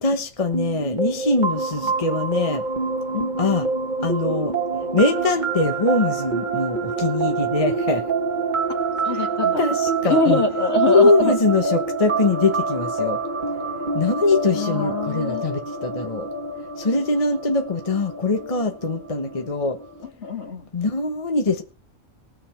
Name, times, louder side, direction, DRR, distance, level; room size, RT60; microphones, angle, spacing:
voice 1, 0.0-2.6 3.4-3.7 4.0-4.5 4.9-8.0 9.1-9.3 9.6-10.4 10.9-13.2 13.9-16.3 16.8-19.8 20.7-21.6, left 3 dB, 30° left, 1.2 m, -22 dB
sound 1, 0.5-20.1, right 4 dB, 40° right, 1.6 m, -26 dB
voice 2, 9.1-9.6 10.0-11.3 14.5-15.4 20.2-20.7, left 2 dB, 55° left, 2.4 m, -23 dB
20.0 x 6.8 x 4.5 m
omnidirectional pair, 1.3 m